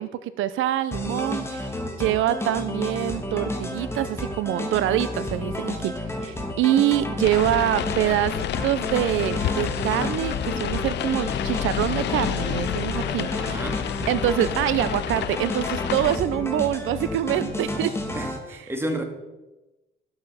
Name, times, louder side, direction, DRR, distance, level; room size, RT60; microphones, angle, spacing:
voice 1, 0.0-1.7 2.0-5.9 6.2-13.7 14.1-17.9, right 13 dB, 85° right, 0.6 m, -25 dB
sound 1, 0.9-18.4, left 1 dB, 10° left, 2.1 m, -31 dB
sound 2, 7.2-16.2, left 13 dB, 60° left, 0.4 m, -29 dB
voice 2, 13.4-13.9 18.1-19.0, right 1 dB, 10° right, 2.1 m, -31 dB
12.0 x 7.8 x 5.6 m
cardioid pair, 90°, 20 cm